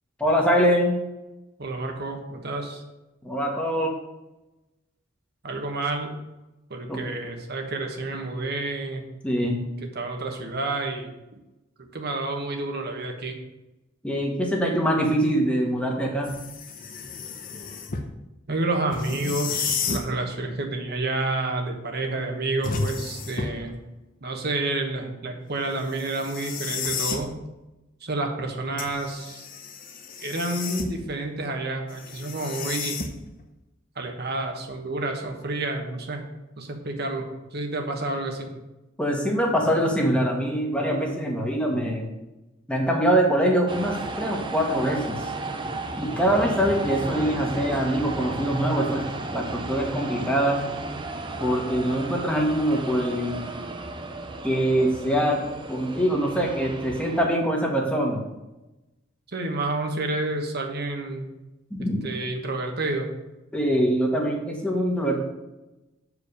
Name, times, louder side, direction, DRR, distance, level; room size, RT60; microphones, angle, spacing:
voice 1, 0.2-1.0 3.2-3.9 6.9-7.0 9.2-9.6 14.0-16.3 39.0-42.1 42.7-45.3 46.0-49.0 49.3-50.6 51.4-53.4 54.4-55.4 55.7-58.2 61.7-62.0 63.5-65.2, equal, 5° left, 0 dB, 1.5 m, -23 dB
voice 2, 1.6-2.8 5.4-6.2 6.7-9.0 9.9-11.1 11.9-13.3 18.5-23.8 24.2-27.4 28.0-29.5 30.2-33.0 33.9-36.2 36.6-37.2 37.5-38.5 59.3-61.3 62.0-63.1, right 2 dB, 55° right, 3 dB, 1.2 m, -29 dB
sound 1, 16.2-18.1 18.9-20.1 22.6-23.7 25.9-27.3 28.8-31.1 31.9-33.4, left 5 dB, 45° left, 0.9 m, -32 dB
sound 2, 43.7-57.3, right 2 dB, 25° right, 0.7 m, -34 dB
6.9 x 5.0 x 6.7 m, 0.99 s
head